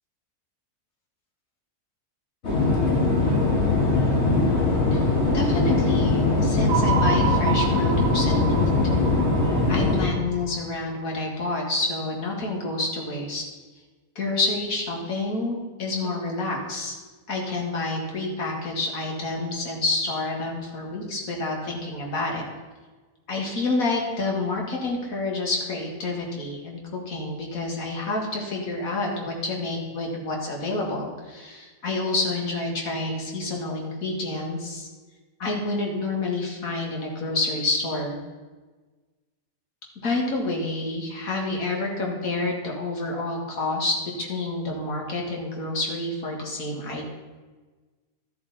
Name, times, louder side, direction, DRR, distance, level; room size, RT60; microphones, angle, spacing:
sound 1, 2.4-10.1, left 3 dB, 45° left, 2.1 m, -21 dB
voice 1, 5.3-8.7 9.7-13.4 14.2-17.0 17.3-22.4 23.3-34.9 35.4-38.2 40.0-47.1, left 2 dB, 65° left, -1 dB, 2.2 m, -28 dB
sound 2, 6.7-10.9, right 7 dB, 65° right, 1.4 m, -29 dB
12.5 x 8.0 x 4.1 m, 1.3 s
omnidirectional pair, 1.6 m